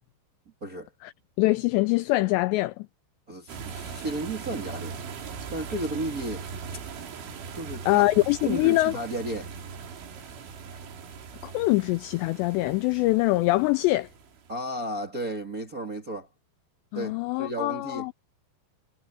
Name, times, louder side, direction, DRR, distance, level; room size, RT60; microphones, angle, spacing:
voice 1, 1.4-2.9 7.9-9.0 11.4-14.1 16.9-18.1, left 20 dB, 85° left, 2.5 m, -24 dB
voice 2, 3.3-4.9 5.5-6.4 7.5-8.0 8.4-9.5 14.5-16.3 16.9-18.1, right 1 dB, 30° right, 1.6 m, -33 dB
sound 1, 3.5-14.6, right 6 dB, 75° right, 5.9 m, -40 dB
omnidirectional pair, 5.5 m